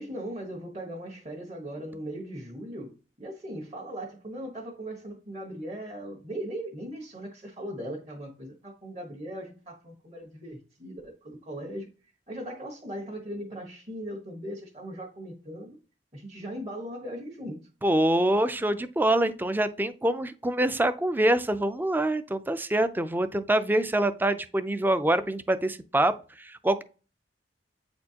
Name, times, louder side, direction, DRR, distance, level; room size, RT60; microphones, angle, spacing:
voice 1, 0.0-11.9 12.3-15.8 16.1-17.6, right 1 dB, 35° right, 1.4 m, -39 dB
voice 2, 17.8-26.1 26.4-26.8, right 1 dB, 10° right, 0.4 m, -25 dB
8.4 x 4.3 x 2.8 m
head